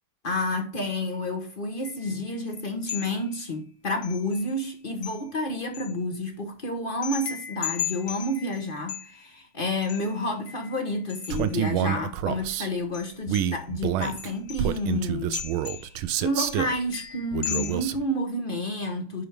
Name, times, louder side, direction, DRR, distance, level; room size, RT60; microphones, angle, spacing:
voice 1, 0.2-15.4 15.7-15.9 16.2-19.2, left 1 dB, 35° left, 0.9 m, -30 dB
sound 1, 1.8-2.4 2.9-3.5 4.0-4.7 5.0-5.9 7.0-9.4 9.8-11.6 12.9-13.6 14.0-14.9 15.3-16.1 16.4-17.9, left 9 dB, 70° left, 2.0 m, -37 dB
Male speech man speaking, 11.3-12.7 13.3-16.8 17.3-18.0, right 11 dB, 85° right, 1.5 m, -28 dB
10.0 x 4.5 x 3.5 m
omnidirectional pair, 2.3 m